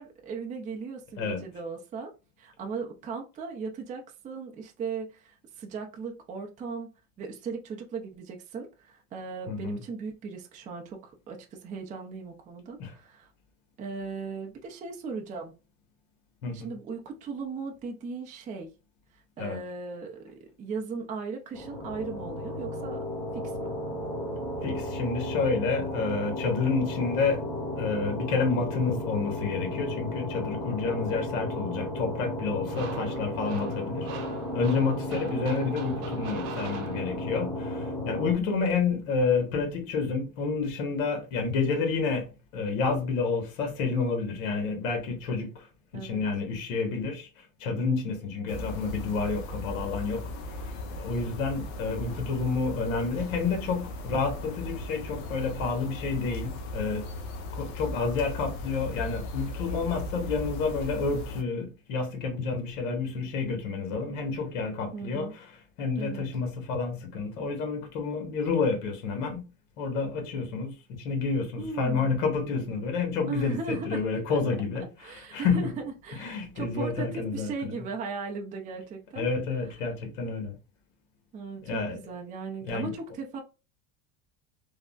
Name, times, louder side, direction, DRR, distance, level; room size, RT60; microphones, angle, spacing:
voice 1, 0.0-2.1 2.4-6.9 7.2-13.3 13.8-15.5 16.5-18.7 19.4-23.0 23.3-23.7 38.3-38.9 45.9-46.2 64.9-65.4 66.0-66.3 71.6-72.1 73.2-74.0 74.3-74.4 75.0-79.3 81.3-83.4, right 4 dB, 20° right, 0.4 m, -37 dB
voice 2, 1.2-1.5 9.5-9.8 12.8-12.9 16.4-16.7 19.4-19.6 24.6-27.4 27.8-45.7 45.9-47.3 47.6-57.1 57.5-65.3 65.8-69.5 69.8-75.7 76.2-77.7 79.2-80.6 81.6-82.0 82.7-82.9, left 4 dB, 80° left, 1.2 m, -29 dB
sound 1, 21.5-38.3, left 1 dB, 5° left, 1.0 m, -34 dB
sound 2, 32.7-37.5, right 6 dB, 60° right, 0.8 m, -42 dB
sound 3, 48.5-61.4, left 2 dB, 65° left, 0.8 m, -37 dB
3.4 x 2.0 x 2.3 m
supercardioid pair, 130°, 42 cm